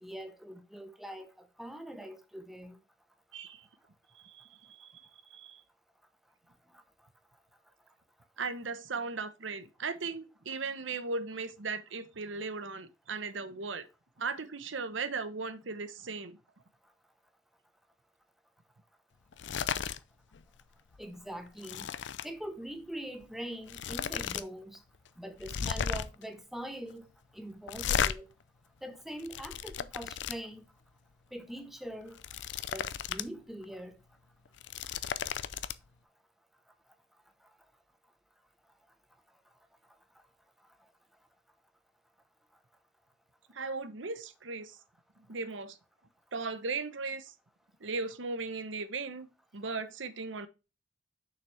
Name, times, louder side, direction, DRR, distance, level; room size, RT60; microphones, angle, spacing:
voice 1, 0.0-2.8 21.0-21.9 22.2-24.8 25.2-27.0 27.3-28.3 28.8-30.6 31.3-32.2 32.7-34.0, equal, ahead, 0.9 m, -43 dB
voice 2, 3.3-3.6 4.1-5.6 8.4-13.9 14.2-16.4 43.5-44.8 45.3-45.8 46.3-47.3 47.8-49.3 49.5-50.5, right 4 dB, 85° right, 1.0 m, -37 dB
sound 1, 19.3-20.0 20.3-20.6 20.9-22.3 23.2-23.3 23.7-24.4 24.7-24.8 25.4-26.2 27.7-28.1 28.9-30.4 32.0-33.3 33.6-33.7 34.4-35.7, left 7 dB, 70° left, 0.5 m, -34 dB
6.6 x 5.9 x 3.3 m
head